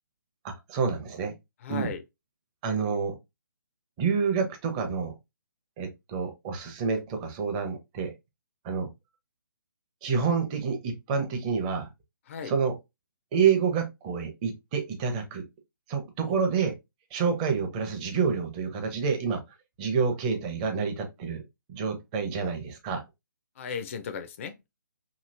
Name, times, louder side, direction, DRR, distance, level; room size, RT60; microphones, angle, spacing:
voice 1, 0.4-1.3 1.7-1.9 2.6-3.1 4.0-5.1 5.8-8.1 8.6-8.9 10.0-11.9 12.4-12.8 13.3-15.5 15.9-16.7 17.1-19.4 19.8-21.4 21.7-23.0, right 6 dB, 20° right, 0.6 m, -28 dB
voice 2, 1.6-2.0 12.3-12.5 16.3-16.4 23.6-24.7, left 6 dB, 40° left, 0.3 m, -36 dB
2.9 x 2.7 x 2.6 m
figure-of-eight pair, 145°, 11 cm